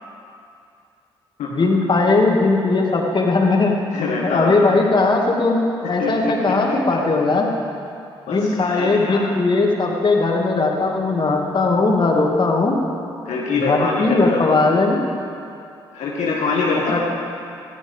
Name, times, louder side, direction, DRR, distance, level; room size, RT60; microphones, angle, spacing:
voice 1, 1.5-3.8 4.2-7.5 8.3-12.8 13.5-15.0 16.9-17.0, left 3 dB, 35° left, 0 dB, 2.4 m, -18 dB
voice 2, 3.9-4.6 5.8-6.5 8.3-9.2 13.3-14.4 15.9-17.0, left 3 dB, 65° left, -3 dB, 1.8 m, -24 dB
19.5 x 14.5 x 3.7 m, 2.6 s
hypercardioid pair, 45°, 13 cm